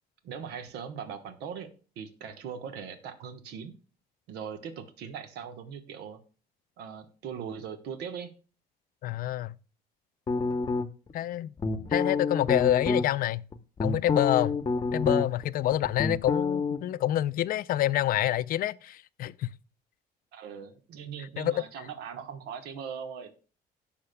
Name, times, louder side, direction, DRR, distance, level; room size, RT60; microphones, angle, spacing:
voice 1, 0.2-3.7 4.3-6.2 6.8-8.3 20.3-23.5, right 7 dB, 85° right, 1.2 m, -40 dB
voice 2, 9.0-9.5 11.1-11.5 11.9-13.4 13.8-14.6 14.9-19.5 21.4-21.6, left 13 dB, 60° left, 0.4 m, -27 dB
sound 1, 10.3-11.1 11.6-13.0 13.5-15.5 15.7-16.8, left 3 dB, 25° left, 0.8 m, -28 dB
17.0 x 5.8 x 2.2 m
cardioid pair, 110°, 17 cm